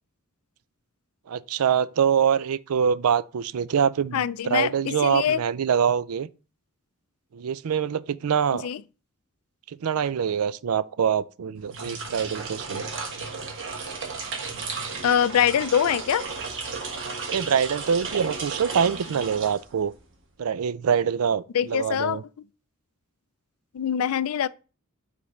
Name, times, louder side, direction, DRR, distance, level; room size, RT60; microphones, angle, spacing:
voice 1, 1.3-6.3 7.3-8.7 9.8-12.8 17.3-19.9 20.4-22.2, right 7 dB, 80° right, 0.4 m, -24 dB
voice 2, 4.1-5.4 8.6-8.8 15.0-16.2 21.5-22.2 23.7-24.5, left 9 dB, 75° left, 0.4 m, -24 dB
sound 1, 11.6-20.0, right 4 dB, 55° right, 1.4 m, -34 dB
5.1 x 4.1 x 5.8 m
head